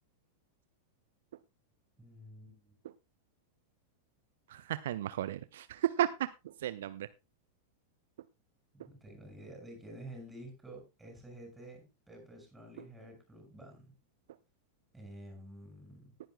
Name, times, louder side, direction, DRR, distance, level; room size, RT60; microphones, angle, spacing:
voice 1, 2.0-2.7 8.7-13.9 14.9-16.1, right 1 dB, 5° right, 2 dB, 6.4 m, -50 dB
voice 2, 4.5-6.1 6.4-7.1, right 12 dB, 60° right, 15 dB, 0.5 m, -34 dB
18.5 x 10.0 x 2.2 m, 0.25 s
figure-of-eight pair, 90°, 0 cm